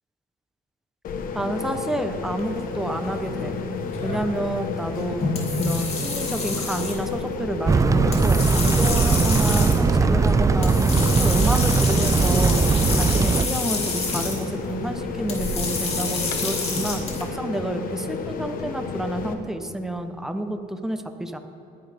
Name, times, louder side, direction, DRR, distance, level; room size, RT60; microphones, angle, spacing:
sound 1, 1.0-19.3, left 5 dB, 55° left, 1.2 m, -32 dB
voice 1, 1.3-3.5 4.0-5.2 5.6-10.7 11.1-12.6 12.9-21.4, right 1 dB, 5° right, 7 dB, 0.7 m, -29 dB
sound 2, 2.4-17.2, left 3 dB, 40° left, 2.6 m, -29 dB
sound 3, 7.7-13.5, right 4 dB, 20° right, 0.4 m, -19 dB
19.5 x 10.5 x 3.5 m, 2.6 s
cardioid pair, 110°, 17 cm